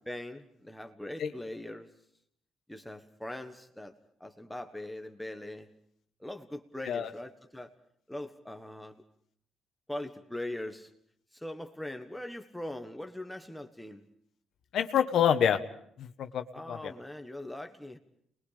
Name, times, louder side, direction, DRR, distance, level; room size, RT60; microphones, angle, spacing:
voice 1, 0.0-1.9 2.7-3.9 4.2-5.7 6.2-7.7 8.1-9.0 9.9-10.9 11.3-14.0 16.5-18.0, left 1 dB, 5° left, 6 dB, 1.4 m, -41 dB
voice 2, 14.7-15.6 16.0-16.9, left 8 dB, 70° left, 8 dB, 1.2 m, -27 dB
28.5 x 21.5 x 5.1 m, 0.67 s
cardioid pair, 90°, 0 cm